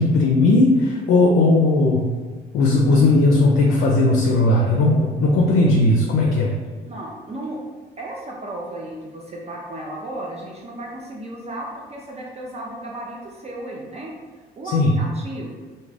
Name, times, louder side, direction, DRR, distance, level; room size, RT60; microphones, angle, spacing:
voice 1, 0.0-2.1 2.5-6.6 14.7-14.9, left 2 dB, 70° left, 0 dB, 0.4 m, -17 dB
voice 2, 6.9-7.6 8.0-14.1 14.6-15.5, right 1 dB, 30° right, -2 dB, 0.4 m, -34 dB
2.3 x 2.1 x 3.2 m, 1.4 s
supercardioid pair, 65°, 21 cm